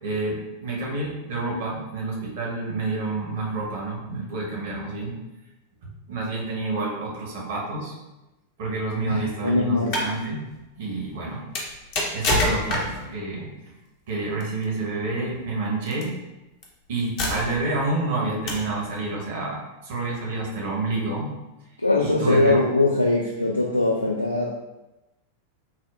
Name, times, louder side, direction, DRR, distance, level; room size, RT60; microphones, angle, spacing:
voice 1, 0.0-5.2 5.8-7.9 8.6-10.4 10.8-11.4 12.1-13.5 14.1-16.1 16.9-21.3 22.0-22.6, right 3 dB, 55° right, -2 dB, 0.9 m, -29 dB
voice 2, 9.1-9.9 11.3-11.4 21.8-24.6, left 2 dB, 85° left, -1 dB, 0.3 m, -22 dB
sound 1, 9.7-10.1 11.5-13.1 14.4-14.6 15.9-16.0 16.6-16.7 17.2-17.7 18.5-18.8, left 1 dB, 40° left, 0.8 m, -25 dB
5.8 x 2.1 x 2.4 m, 1.0 s
figure-of-eight pair, 90°, 0 cm